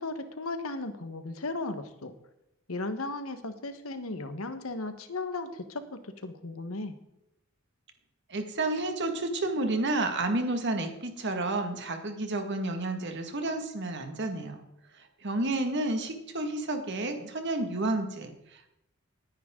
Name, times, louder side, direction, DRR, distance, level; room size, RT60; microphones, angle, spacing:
voice 1, 0.0-2.1 2.7-6.9, left 2 dB, 80° left, 9 dB, 1.3 m, -36 dB
voice 2, 8.3-14.6 14.9-18.7, right 2 dB, 55° right, 5 dB, 1.9 m, -31 dB
19.0 x 10.5 x 3.8 m, 0.85 s
head